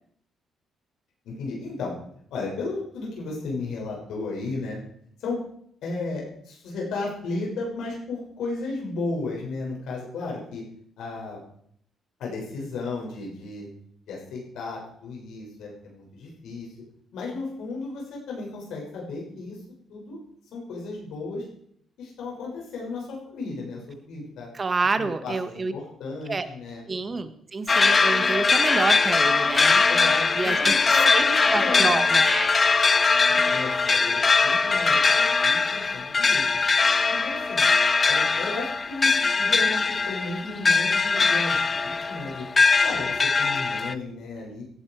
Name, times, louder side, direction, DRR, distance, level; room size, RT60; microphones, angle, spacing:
voice 1, 1.2-2.0 2.3-4.8 5.2-5.4 5.8-10.6 11.0-11.4 12.2-13.7 14.1-16.7 17.1-20.2 20.5-21.5 22.0-24.5 25.0-26.8 29.9-32.0 33.3-36.5 37.1-37.6 38.1-42.5 42.8-44.6, left 3 dB, 80° left, -2 dB, 6.7 m, -34 dB
voice 2, 24.5-25.7 26.3-26.5 26.9-29.8 30.3-32.5, right 4 dB, 30° right, 10 dB, 1.6 m, -28 dB
sound 1, 27.7-43.9, left 4 dB, 30° left, 0.6 m, -21 dB
17.5 x 12.0 x 4.9 m, 0.67 s
cardioid pair, 90°, 0 cm